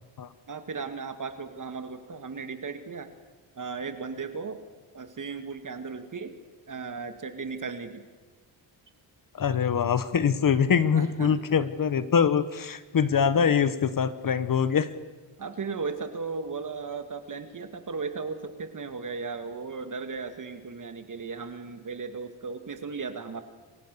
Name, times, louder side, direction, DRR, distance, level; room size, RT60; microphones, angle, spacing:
voice 1, 0.5-3.1 3.6-4.6 4.9-6.3 6.7-8.0 10.9-11.4 15.4-23.4, right 4 dB, 40° right, 9 dB, 2.0 m, -36 dB
voice 2, 9.3-14.9, left 7 dB, 45° left, 14 dB, 1.1 m, -24 dB
27.5 x 16.0 x 6.8 m, 1.4 s
cardioid pair, 75°, 45 cm